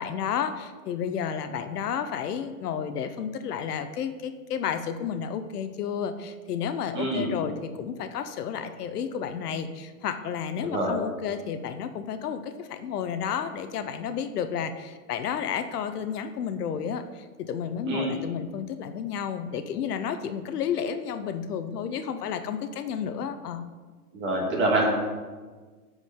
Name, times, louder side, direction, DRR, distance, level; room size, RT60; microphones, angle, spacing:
voice 1, 0.0-23.6, left 7 dB, 80° left, 9 dB, 0.8 m, -31 dB
voice 2, 6.9-7.3 10.6-10.9 17.8-18.2 24.1-24.8, right 2 dB, 25° right, -3 dB, 2.2 m, -26 dB
13.0 x 4.8 x 3.7 m, 1.4 s
hypercardioid pair, 140°, 46 cm